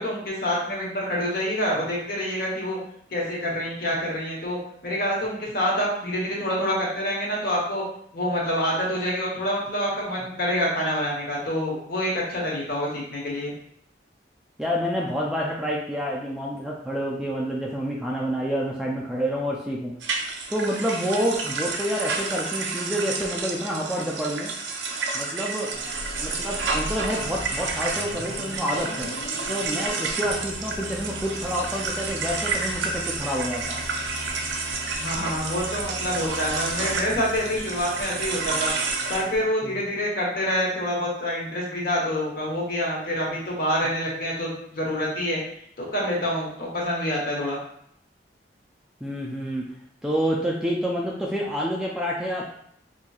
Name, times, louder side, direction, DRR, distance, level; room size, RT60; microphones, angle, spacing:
voice 1, 0.0-2.8 3.1-7.8 8.1-13.5 35.0-38.7 39.1-45.4 45.8-47.6, equal, 55° left, -3 dB, 1.0 m, -27 dB
voice 2, 14.6-19.9 20.5-24.5 25.1-25.7 26.2-29.1 29.5-33.8 39.6-39.8 49.0-49.7 50.0-52.4, equal, 5° right, -3 dB, 0.3 m, -28 dB
sound 1, 20.0-39.2, right 4 dB, 85° right, 0.5 m, -30 dB
sound 2, 25.7-39.4, left 2 dB, 70° left, 0.5 m, -39 dB
4.3 x 2.6 x 2.3 m, 0.69 s
head